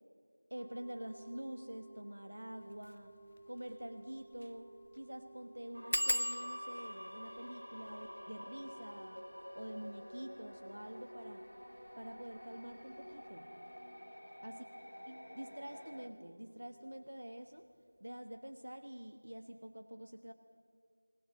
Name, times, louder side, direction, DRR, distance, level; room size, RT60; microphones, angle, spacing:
sound 1, 0.5-18.2, right 2 dB, ahead, 0.6 m, -60 dB
voice 1, 0.5-3.1 3.5-9.2 9.5-11.4 12.0-13.5 14.4-14.6 15.1-17.7 18.0-20.3, equal, 60° right, 6 dB, 1.3 m, -47 dB
sound 2, 2.7-2.9 3.4-3.5 3.7-3.8 4.3-4.6 4.8-4.9 5.9-11.2 11.9-12.4 12.7-13.1 13.3-13.4, equal, 90° left, 0.5 m, -41 dB
sound 3, 5.7-16.1, equal, 70° left, 1.6 m, -51 dB
21.0 x 19.0 x 7.2 m, 2.1 s
figure-of-eight pair, 175°, 0 cm